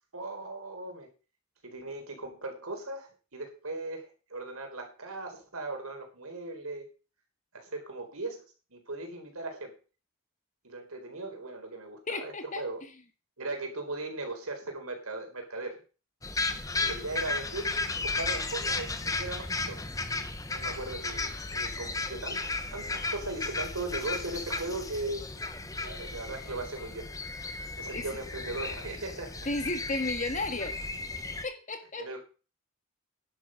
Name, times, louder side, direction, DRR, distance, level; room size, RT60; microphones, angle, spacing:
voice 1, 0.1-1.1 1.6-6.9 7.5-9.8 10.6-12.8 13.4-15.8 16.8-19.8 20.5-25.3 25.8-27.1 27.8-29.4 32.0-32.2, right 2 dB, 80° right, 4 dB, 4.0 m, -38 dB
voice 2, 12.1-12.6 27.9-28.0 29.5-30.7 31.4-32.2, left 2 dB, 35° left, 7 dB, 1.7 m, -33 dB
sound 1, 16.2-31.4, left 3 dB, 15° left, 0.9 m, -34 dB
11.0 x 8.4 x 6.3 m, 0.35 s
head